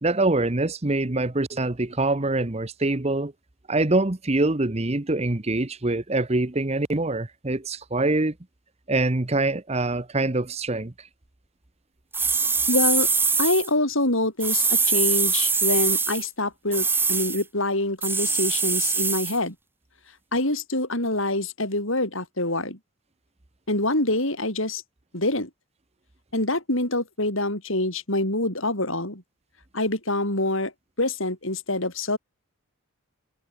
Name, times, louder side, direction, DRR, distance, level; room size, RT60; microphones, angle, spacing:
voice 1, 0.0-3.3 3.7-8.3 8.9-10.9, right 2 dB, 30° right, 1.0 m, -24 dB
sound 1, 12.1-13.7 14.4-16.3 16.7-17.4 18.0-19.4, right 4 dB, 10° right, 1.2 m, -23 dB
voice 2, 12.7-13.1 13.4-19.5 20.3-22.8 23.7-24.8 25.1-25.5 26.3-29.2 29.7-30.7 31.0-32.2, left 2 dB, 65° left, 7.7 m, -25 dB
head